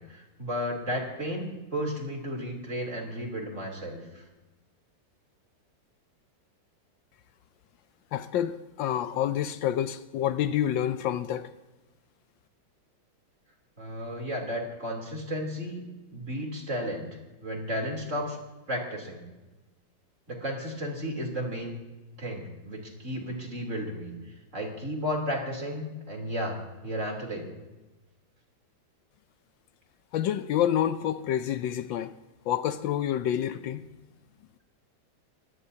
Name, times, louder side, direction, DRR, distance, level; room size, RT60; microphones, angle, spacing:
voice 1, 0.0-4.2 13.8-15.8 16.1-17.1 17.4-18.4 18.7-19.2 20.3-21.8 22.2-27.5, equal, 40° right, 3.7 m, -33 dB
voice 2, 8.1-11.5 30.1-32.1 32.5-33.9, left 10 dB, 75° left, 1.3 m, -28 dB
23.5 x 18.0 x 2.8 m
omnidirectional pair, 2.1 m